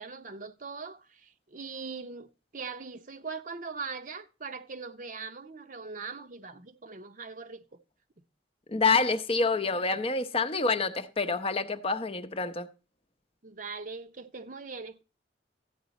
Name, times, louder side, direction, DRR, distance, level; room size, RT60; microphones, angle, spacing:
voice 1, 0.0-2.3 2.5-7.6 13.4-15.0, right 4 dB, 45° right, 0.7 m, -41 dB
voice 2, 8.7-12.7, left 4 dB, 30° left, 0.7 m, -27 dB
13.5 x 8.7 x 4.1 m
head